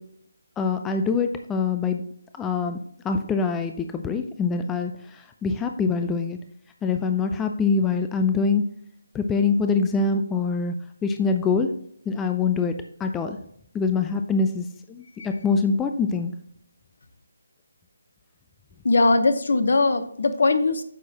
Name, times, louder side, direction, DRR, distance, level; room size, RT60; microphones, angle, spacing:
voice 1, 0.6-2.0 2.4-2.8 3.0-4.9 5.4-6.4 6.8-8.6 9.1-10.7 11.0-11.7 12.1-12.7 13.0-13.4 13.7-16.3, left 4 dB, 10° left, 5 dB, 0.4 m, -24 dB
voice 2, 18.8-20.8, left 3 dB, 60° left, 10 dB, 0.9 m, -20 dB
9.1 x 6.2 x 2.9 m, 0.67 s
figure-of-eight pair, 155°, 0 cm